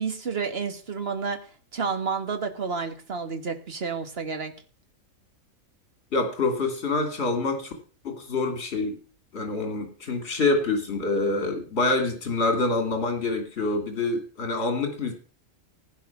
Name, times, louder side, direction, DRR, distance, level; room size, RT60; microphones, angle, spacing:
voice 1, 0.0-1.4 1.7-4.5, right 5 dB, 45° right, 8 dB, 1.8 m, -30 dB
voice 2, 6.1-7.7 8.0-9.0 9.3-15.1, left 3 dB, 50° left, 5 dB, 3.1 m, -26 dB
16.0 x 9.4 x 5.9 m, 0.41 s
omnidirectional pair, 1.5 m